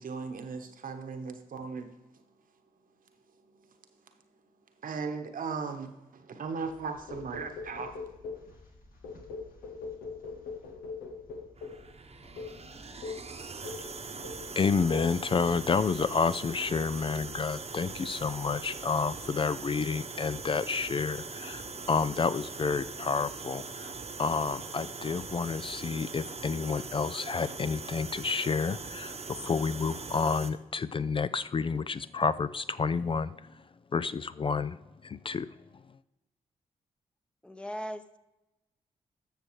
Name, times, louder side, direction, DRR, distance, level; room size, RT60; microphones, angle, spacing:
voice 1, 0.0-1.9 4.8-7.9, right 5 dB, 65° right, 6 dB, 1.1 m, -37 dB
sound 1, 6.5-19.4, left 1 dB, 70° left, 1.9 m, -58 dB
sound 2, 7.1-8.5 9.0-11.9 12.4-12.6 13.0-13.3 13.6-13.9 14.2-14.5 14.9-15.1, left 4 dB, 90° left, 0.9 m, -41 dB
sound 3, 11.6-30.5, right 4 dB, 45° right, 0.9 m, -41 dB
voice 2, 14.6-21.6 21.9-23.9 24.2-33.3 33.9-34.8 35.0-35.5, left 5 dB, 35° left, 14 dB, 0.4 m, -30 dB
voice 3, 37.4-38.2, equal, 5° left, 8 dB, 0.8 m, -38 dB
13.0 x 6.3 x 3.2 m, 1.0 s
supercardioid pair, 45°, 15 cm